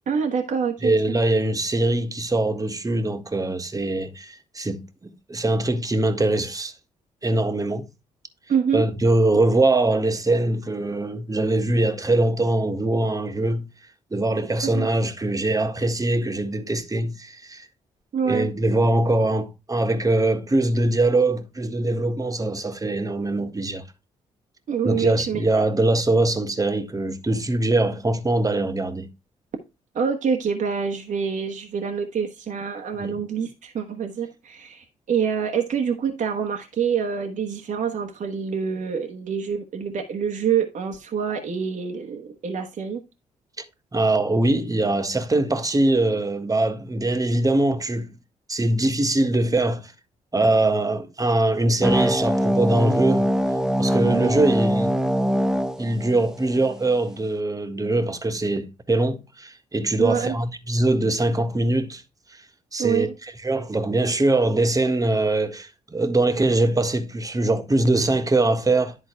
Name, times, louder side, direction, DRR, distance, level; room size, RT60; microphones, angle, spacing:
voice 1, 0.1-1.2 8.5-8.8 14.7-14.9 18.1-18.5 24.7-25.6 29.9-43.0 54.0-54.3 60.0-60.3 62.8-63.1, right 7 dB, 60° right, 1.3 m, -26 dB
voice 2, 0.8-6.7 7.2-7.8 8.7-13.7 14.1-17.7 18.2-23.8 24.8-29.1 33.0-33.2 43.6-43.7 43.9-48.1 48.5-49.9 50.3-53.3 53.8-55.0 55.8-62.0 62.3-62.4 62.7-63.1 63.4-69.0, right 2 dB, 25° right, 1.5 m, -22 dB
sound 1, 51.8-56.8, equal, 5° right, 0.9 m, -23 dB
10.5 x 3.9 x 4.4 m
supercardioid pair, 55°, 15 cm